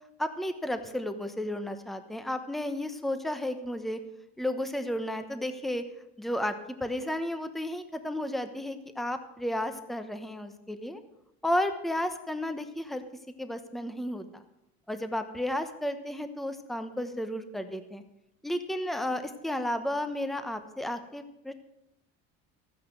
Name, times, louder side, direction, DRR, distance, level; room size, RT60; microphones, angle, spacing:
voice 1, 0.2-4.0 4.4-5.9 6.2-11.0 11.4-13.0 13.4-14.4 14.9-18.0 18.4-21.5, left 1 dB, ahead, 9 dB, 1.0 m, -33 dB
14.0 x 9.5 x 6.2 m, 0.85 s
cardioid pair, 125°, 32 cm